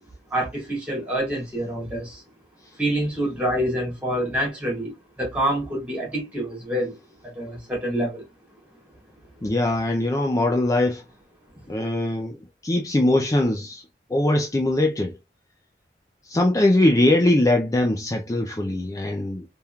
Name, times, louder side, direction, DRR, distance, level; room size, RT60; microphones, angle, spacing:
voice 1, 0.3-2.2 2.8-7.0 7.2-8.3, right 1 dB, 10° right, 2.3 m, -27 dB
voice 2, 9.4-11.0 11.7-13.8 14.1-15.1 16.2-19.4, left 1 dB, 20° left, 0.5 m, -21 dB
4.2 x 3.5 x 2.3 m
head